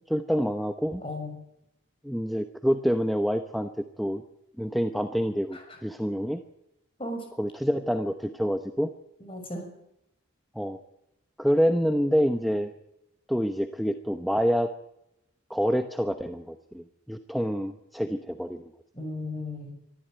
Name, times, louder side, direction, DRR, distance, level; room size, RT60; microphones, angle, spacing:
voice 1, 0.1-1.0 2.0-4.2 4.6-6.4 7.4-8.9 10.5-10.8 11.4-12.7 13.3-14.7 15.5-18.7, equal, ahead, 6 dB, 0.9 m, -27 dB
voice 2, 1.0-1.4 5.5-5.6 7.0-7.3 9.2-9.7 18.9-19.7, left 2 dB, 25° left, 4 dB, 6.5 m, -35 dB
24.0 x 14.0 x 9.2 m, 0.83 s
head